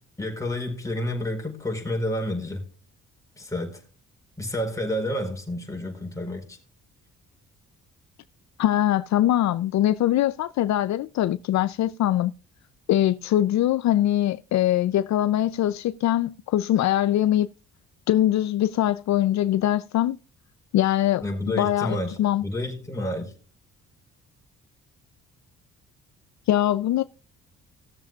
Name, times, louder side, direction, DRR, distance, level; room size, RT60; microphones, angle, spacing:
voice 1, 0.2-2.7 3.4-3.8 4.4-6.6 21.2-23.3, left 1 dB, 10° left, 4.5 m, -30 dB
voice 2, 8.6-12.3 12.9-17.5 18.1-20.2 20.7-21.2 21.6-22.4 26.5-27.0, left 12 dB, 65° left, 0.5 m, -22 dB
18.0 x 7.3 x 2.4 m
cardioid pair, 90°, 30 cm